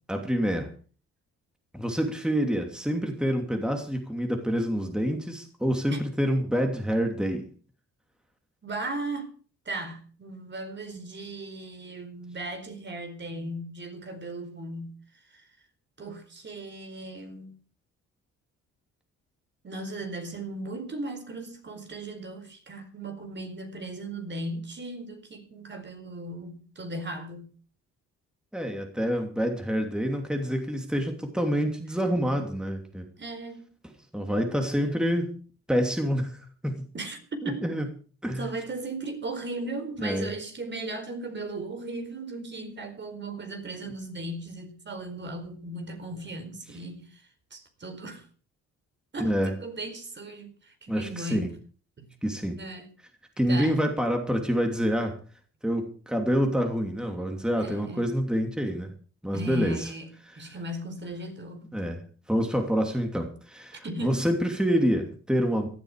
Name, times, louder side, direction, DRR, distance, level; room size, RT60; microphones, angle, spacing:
voice 1, 0.1-0.7 1.7-7.5 28.5-33.1 34.1-35.4 35.7-36.9 37.6-37.8 38.2-38.5 40.0-40.3 49.2-49.5 50.9-51.5 52.2-52.6 53.4-55.2 55.6-58.9 59.2-59.9 60.3-60.5 61.7-65.7, equal, 5° right, 2.9 m, -27 dB
voice 2, 8.6-9.3 9.6-15.0 15.3-15.5 16.0-17.6 19.6-27.5 33.2-33.7 36.9-37.7 38.4-48.3 49.1-51.5 52.0-52.1 52.5-52.9 53.5-53.8 57.6-58.1 59.3-60.1 60.3-61.7 63.8-64.3, right 2 dB, 35° right, 4.6 m, -37 dB
18.0 x 12.5 x 5.0 m
cardioid pair, 90°, 30 cm